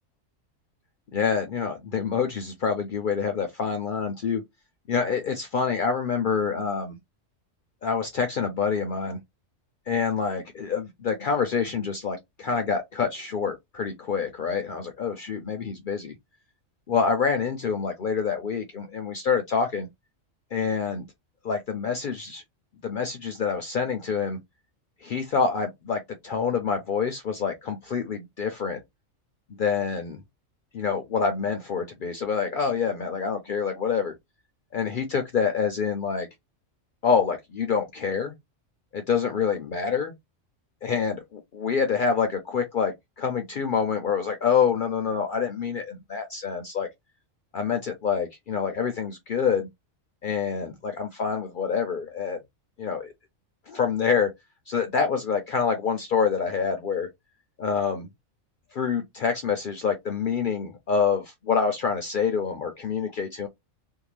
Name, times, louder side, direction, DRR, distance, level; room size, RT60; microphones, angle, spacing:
voice 1, 1.1-4.4 4.9-7.0 7.8-9.2 9.9-16.1 16.9-19.9 20.5-21.1 21.4-22.4 22.8-24.4 25.0-28.8 29.6-30.2 30.7-34.1 34.7-36.3 37.0-38.3 38.9-40.1 40.8-46.9 47.5-49.7 50.2-52.4 52.8-53.1 53.7-54.3 54.7-57.1 57.6-58.1 58.7-63.5, left 6 dB, 60° left, 0.5 m, -26 dB
2.7 x 2.2 x 3.0 m
omnidirectional pair, 1.3 m